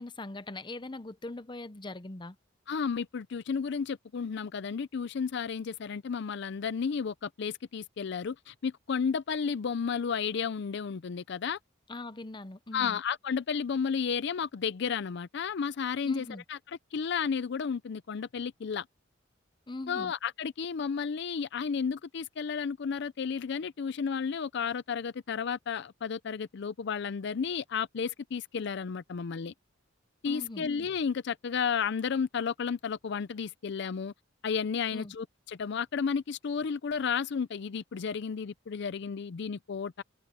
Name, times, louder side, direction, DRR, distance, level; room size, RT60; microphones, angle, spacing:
voice 1, 0.0-2.4 11.9-13.0 16.0-16.4 19.7-20.1 30.2-30.6 34.9-35.1, left 2 dB, 25° left, 0.7 m, -41 dB
voice 2, 2.7-11.6 12.7-18.9 19.9-29.5 30.2-34.1 34.4-40.0, left 6 dB, 60° left, 0.4 m, -32 dB
head